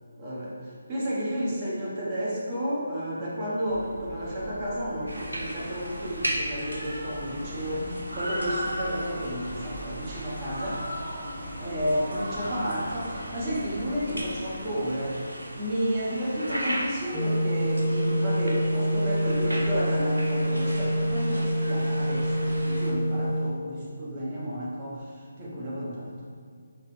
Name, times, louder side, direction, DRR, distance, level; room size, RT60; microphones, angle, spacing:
voice 1, 0.2-10.8 11.6-26.3, equal, 25° right, -7 dB, 1.1 m, -32 dB
sound 1, 3.7-14.8, left 1 dB, 25° left, 0.5 m, -43 dB
sound 2, 5.1-22.9, right 1 dB, 80° right, 0.7 m, -36 dB
sound 3, 17.1-23.5, equal, 5° right, 1.2 m, -26 dB
5.0 x 2.8 x 3.2 m, 2.2 s
figure-of-eight pair, 145°, 0 cm